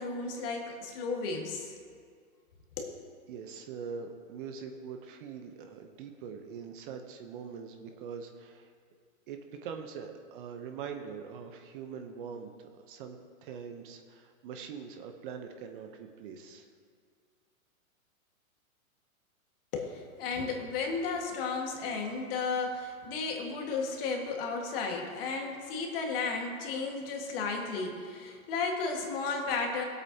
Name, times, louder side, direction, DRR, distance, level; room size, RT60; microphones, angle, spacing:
voice 1, 0.0-1.8 2.8-3.0 19.7-29.8, left 4 dB, 40° left, 2 dB, 1.8 m, -34 dB
voice 2, 3.3-8.7 9.3-16.7, right 6 dB, 40° right, 5 dB, 0.9 m, -43 dB
17.0 x 8.2 x 2.8 m, 2.1 s
hypercardioid pair, 140°, 41 cm